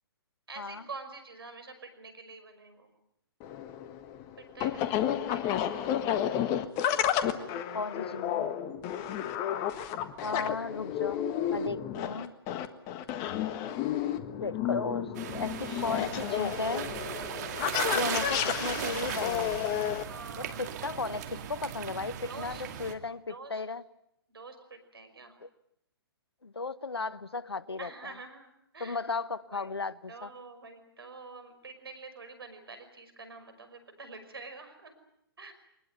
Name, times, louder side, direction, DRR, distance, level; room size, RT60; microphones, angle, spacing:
voice 1, 0.5-2.9 4.4-5.0 5.3-5.8 8.8-9.3 20.0-20.7 22.3-22.6 23.3-23.6 24.3-25.4 27.8-29.0 29.5-29.7 30.1-34.9 35.4-35.5, right 4 dB, 70° right, 9 dB, 5.7 m, -47 dB
sound 1, 3.4-20.0, left 10 dB, 30° left, 1.5 m, -31 dB
voice 2, 7.7-8.5 10.2-12.3 14.4-16.9 17.9-19.6 20.4-23.8 25.4-25.5 26.4-27.9 28.8-30.3, left 3 dB, 80° left, 17 dB, 1.1 m, -35 dB
sound 2, 15.1-22.9, right 9 dB, 45° right, 2.2 m, -37 dB
23.5 x 20.5 x 9.3 m, 0.77 s
figure-of-eight pair, 125°, 13 cm